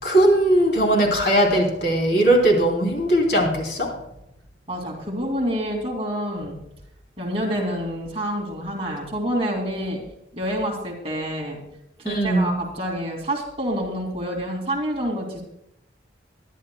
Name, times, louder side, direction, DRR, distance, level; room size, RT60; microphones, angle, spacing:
voice 1, 0.0-3.9 12.0-12.5, right 1 dB, 60° left, 1 dB, 3.0 m, -19 dB
voice 2, 4.7-6.6 7.2-10.0 10.3-11.6 12.0-15.4, equal, 30° right, 0 dB, 2.5 m, -27 dB
20.5 x 11.5 x 2.3 m, 0.83 s
head